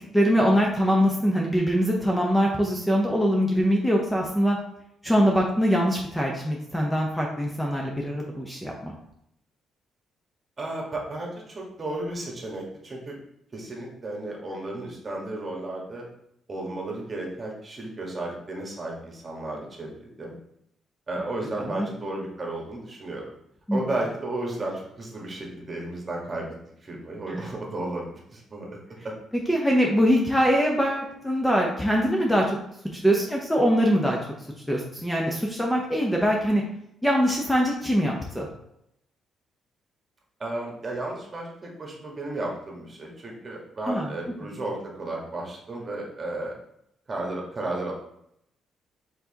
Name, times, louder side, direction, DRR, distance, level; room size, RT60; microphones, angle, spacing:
voice 1, 0.1-4.6 5.0-8.9 21.6-21.9 23.7-23.8 27.3-27.4 29.5-32.6 33.0-34.2 34.7-36.6 37.0-38.5 43.9-44.1, equal, 5° left, -1 dB, 0.7 m, -23 dB
voice 2, 10.6-13.1 13.5-16.0 16.5-20.4 21.1-23.3 23.7-26.5 26.8-28.8 29.0-29.1 40.4-46.5 47.1-47.9, right 2 dB, 35° right, -1 dB, 1.4 m, -33 dB
4.5 x 4.0 x 2.9 m, 0.76 s
cardioid pair, 90°, 0 cm